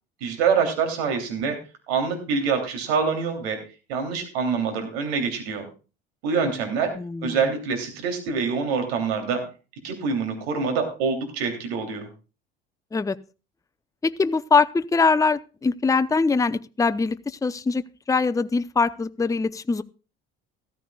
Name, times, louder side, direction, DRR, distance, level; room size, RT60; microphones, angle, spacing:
voice 1, 0.2-1.6 1.9-3.6 3.9-5.6 6.2-6.9 7.2-9.4 9.8-12.1, right 5 dB, 80° right, 5 dB, 3.2 m, -25 dB
voice 2, 6.9-7.4 12.9-13.2 14.0-17.8 18.1-19.8, left 4 dB, 10° left, 12 dB, 0.6 m, -22 dB
15.0 x 13.5 x 2.3 m, 0.33 s
hypercardioid pair, 65°, 30 cm